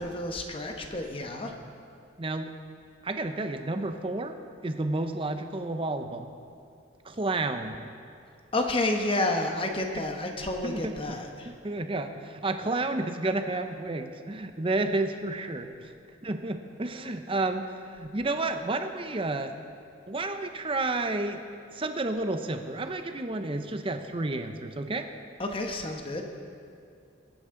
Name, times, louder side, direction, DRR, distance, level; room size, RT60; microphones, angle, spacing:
voice 1, 0.0-1.5 8.5-11.5 25.4-26.2, left 2 dB, 30° left, 3 dB, 1.0 m, -30 dB
voice 2, 2.2-2.5 3.0-4.4 4.6-6.3 7.0-7.8 10.6-11.2 11.6-15.7 16.2-19.5 20.1-21.4 21.7-25.1, right 2 dB, 30° right, 7 dB, 0.7 m, -31 dB
21.0 x 9.3 x 3.8 m, 2.5 s
head